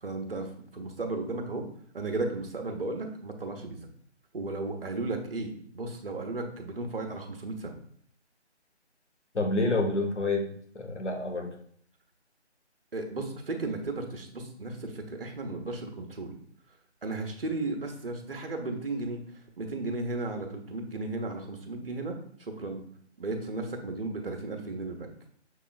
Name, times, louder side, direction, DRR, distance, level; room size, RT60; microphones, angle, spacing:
voice 1, 0.0-1.6 1.9-3.8 4.3-7.8 12.9-16.3 17.0-19.2 19.6-22.1 22.6-22.8 23.2-25.1, right 2 dB, 55° right, 4 dB, 0.9 m, -34 dB
voice 2, 9.3-11.6, left 2 dB, 80° left, 2 dB, 1.1 m, -28 dB
6.2 x 2.9 x 2.4 m, 0.62 s
figure-of-eight pair, 160°, 35 cm